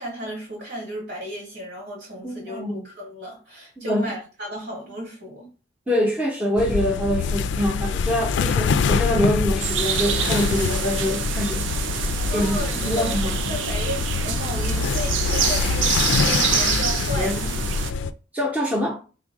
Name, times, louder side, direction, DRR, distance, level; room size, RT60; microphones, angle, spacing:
voice 1, 0.0-5.5 12.3-13.2 13.4-17.5, equal, 65° right, 2.4 m, -34 dB
voice 2, 2.2-2.8 3.8-4.1 5.9-11.7 12.3-13.5 17.2-17.4 18.3-19.0, equal, 10° right, 0.8 m, -25 dB
sound 1, 6.6-18.1, left 5 dB, 75° left, 0.3 m, -25 dB
sound 2, 9.6-17.9, right 8 dB, 85° right, 0.4 m, -27 dB
3.6 x 2.5 x 4.6 m
head